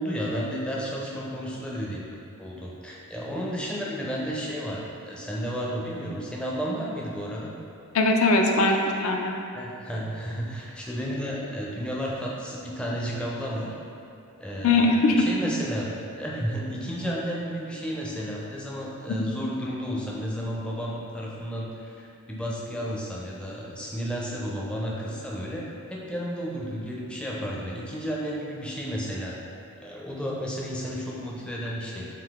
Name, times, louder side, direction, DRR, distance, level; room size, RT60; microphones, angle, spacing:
voice 1, 0.0-7.5 9.5-13.8 14.4-29.3 29.8-32.1, equal, 5° left, -4 dB, 0.4 m, -32 dB
voice 2, 7.9-9.3 14.6-15.3, left 2 dB, 65° left, 2 dB, 0.4 m, -21 dB
3.7 x 2.7 x 3.5 m, 2.6 s
head